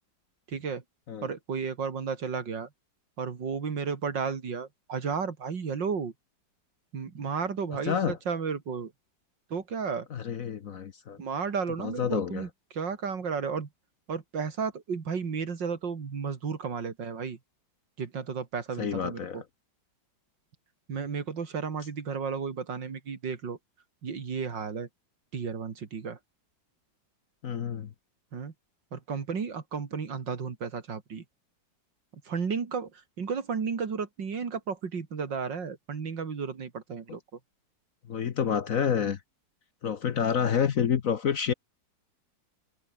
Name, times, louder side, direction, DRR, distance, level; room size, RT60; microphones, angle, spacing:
voice 1, 0.5-0.8 1.2-2.7 3.2-6.1 6.9-8.9 9.5-10.1 11.2-13.7 14.1-17.4 18.0-19.4 20.9-23.6 24.0-24.9 25.3-26.2 28.3-28.5 28.9-31.2 32.2-37.2, right 5 dB, 70° right, 3.0 m, -33 dB
voice 2, 7.9-8.2 10.1-11.2 11.8-12.4 18.8-19.4 27.4-27.9 38.1-39.2 39.8-41.5, left 7 dB, 55° left, 1.2 m, -28 dB
omnidirectional pair, 2.0 m